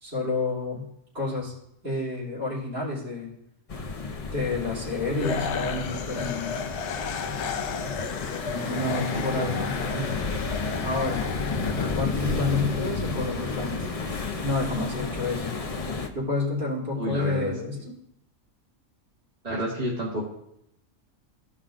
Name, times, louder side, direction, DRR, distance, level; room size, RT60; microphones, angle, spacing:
voice 1, 0.0-0.9 1.1-1.5 1.8-3.3 4.3-6.5 8.4-10.1 10.8-11.3 11.9-13.9 14.4-15.5 16.1-17.8, left 3 dB, 45° right, -5 dB, 3.1 m, -29 dB
sound 1, 3.7-16.1, left 4 dB, 35° left, 0.6 m, -31 dB
sound 2, 5.2-12.4, left 6 dB, 65° left, 0.8 m, -34 dB
voice 2, 9.1-9.7 16.9-17.5 19.4-20.2, right 1 dB, 30° right, -6 dB, 1.7 m, -30 dB
15.0 x 5.5 x 2.5 m, 0.78 s
omnidirectional pair, 1.4 m